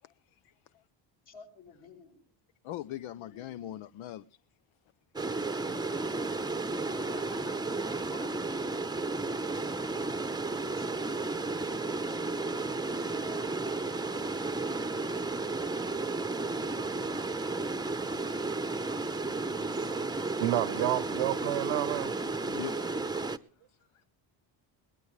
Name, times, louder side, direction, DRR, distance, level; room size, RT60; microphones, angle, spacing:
voice 1, 0.0-0.8 2.6-4.4 5.7-6.0 22.4-22.7 23.7-24.0, left 13 dB, 85° left, 0.8 m, -44 dB
voice 2, 1.2-2.3 3.1-3.8 6.9-7.6 7.9-8.3 10.7-10.8 13.1-14.4, left 4 dB, 60° left, 7.0 m, -52 dB
sound 1, 5.2-23.4, right 3 dB, 10° right, 0.7 m, -33 dB
voice 3, 20.4-22.1, right 15 dB, 85° right, 1.0 m, -30 dB
22.0 x 19.0 x 3.2 m
cardioid pair, 110°, 47 cm